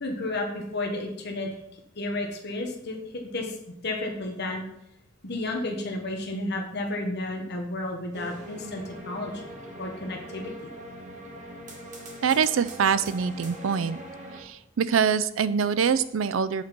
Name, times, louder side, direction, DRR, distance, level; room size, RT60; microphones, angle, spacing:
voice 1, 0.0-1.5 1.9-3.6 3.8-4.6 5.2-9.5 9.8-10.7, left 2 dB, 55° left, 2 dB, 1.2 m, -32 dB
sound 1, 8.1-14.4, right 1 dB, 40° right, 1.4 m, -42 dB
voice 2, 12.2-14.0 14.3-16.6, right 6 dB, 75° right, 14 dB, 0.4 m, -24 dB
7.9 x 4.4 x 5.3 m, 0.76 s
head